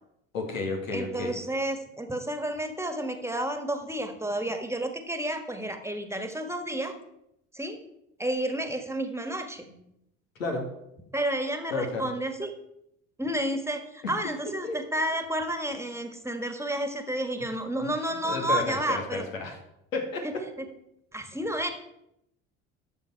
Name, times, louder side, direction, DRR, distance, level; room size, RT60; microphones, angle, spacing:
voice 1, 0.3-1.4 9.7-9.8 10.4-10.7 11.7-12.1 14.0-14.1 14.6-14.8 18.2-19.6 19.9-20.4, left 3 dB, 85° left, 2 dB, 2.2 m, -32 dB
voice 2, 0.9-6.9 7.5-7.8 8.2-9.6 11.1-12.5 13.2-19.2 20.2-20.7 21.1-21.7, right 1 dB, 5° right, 7 dB, 1.6 m, -31 dB
13.0 x 6.6 x 4.6 m, 0.82 s
hypercardioid pair, 65°, 39 cm